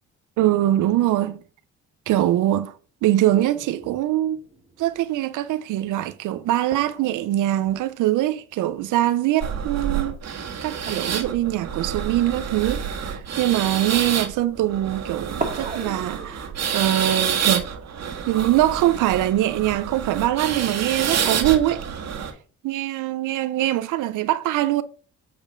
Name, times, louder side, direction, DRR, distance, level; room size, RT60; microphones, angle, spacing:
voice 1, 0.4-1.4 2.1-2.7 3.0-4.4 4.8-10.2 10.6-17.7 18.3-21.8 22.6-24.8, right 14 dB, 85° right, 0.6 m, -23 dB
sound 1, 3.3-9.2 9.5-9.9 10.8-14.1 14.9-15.0 15.4-18.6 19.6-20.6, right 3 dB, 25° right, 2.1 m, -40 dB
sound 2, 9.4-22.3, right 7 dB, 60° right, 1.7 m, -28 dB
8.4 x 5.2 x 5.1 m
cardioid pair, 90°, 30 cm